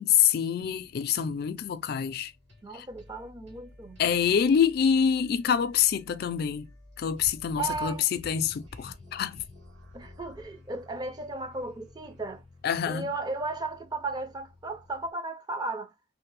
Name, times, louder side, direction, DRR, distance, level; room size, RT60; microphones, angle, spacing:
voice 1, 0.0-2.3 2.7-2.9 4.0-6.7 7.0-9.4 12.6-13.1, left 8 dB, 60° left, 0.3 m, -26 dB
sound 1, 0.6-15.1, left 2 dB, 75° right, 2.1 m, -52 dB
voice 2, 2.6-4.0 7.6-8.0 9.9-12.4 12.9-15.9, right 3 dB, 25° right, 0.5 m, -35 dB
3.2 x 2.0 x 3.1 m
head